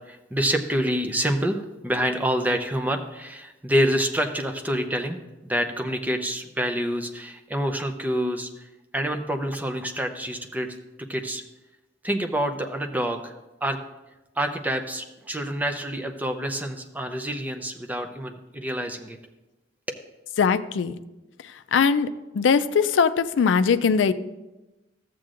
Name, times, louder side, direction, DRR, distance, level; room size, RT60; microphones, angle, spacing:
voice 1, 0.1-8.7 8.9-11.4 12.0-13.8 14.4-19.2 19.9-20.0, equal, 10° right, 5 dB, 0.6 m, -27 dB
voice 2, 20.4-21.0 21.7-22.1 22.4-24.1, left 6 dB, 85° left, 12 dB, 0.4 m, -20 dB
13.5 x 7.5 x 2.5 m, 1.0 s
head